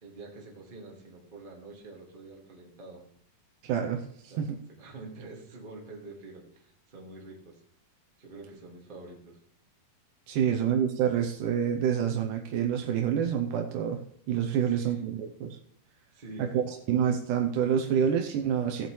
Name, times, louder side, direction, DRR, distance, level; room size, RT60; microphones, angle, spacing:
voice 1, 0.0-3.0 4.3-4.4 4.8-7.6 8.2-9.4 14.5-15.0 16.1-16.6, right 2 dB, 25° right, -1 dB, 1.2 m, -46 dB
voice 2, 3.6-4.0 4.4-4.6 10.3-14.0 14.3-15.6 16.4-18.9, right 8 dB, 75° right, 3 dB, 2.1 m, -27 dB
16.0 x 8.1 x 3.2 m, 0.65 s
omnidirectional pair, 4.1 m